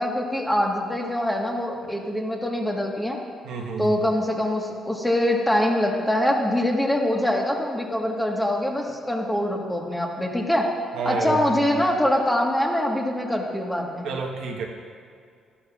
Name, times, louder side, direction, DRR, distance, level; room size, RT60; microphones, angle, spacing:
voice 1, 0.0-3.2 3.8-10.7 11.0-14.1, left 1 dB, 10° left, 0 dB, 1.4 m, -24 dB
voice 2, 3.4-4.0 10.9-11.4 11.7-11.8 14.0-14.6, right 4 dB, 80° right, 0 dB, 1.2 m, -29 dB
13.0 x 11.5 x 2.4 m, 2.2 s
cardioid pair, 90°, 0 cm